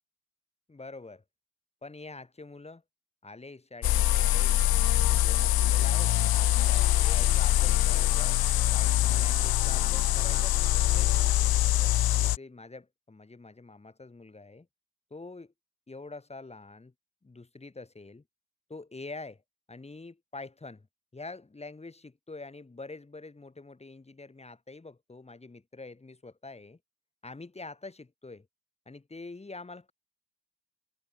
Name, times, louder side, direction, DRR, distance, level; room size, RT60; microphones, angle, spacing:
voice 1, 0.7-1.2 1.8-2.8 3.2-8.4 8.7-14.7 15.1-15.5 15.9-16.9 17.2-18.2 18.7-19.4 19.7-20.9 21.1-26.8 27.2-28.5 28.8-29.9, left 3 dB, 15° left, 6.9 m, -46 dB
sound 1, 3.8-12.4, left 13 dB, 85° left, 0.9 m, -24 dB
wide cardioid pair, 170°, 35 cm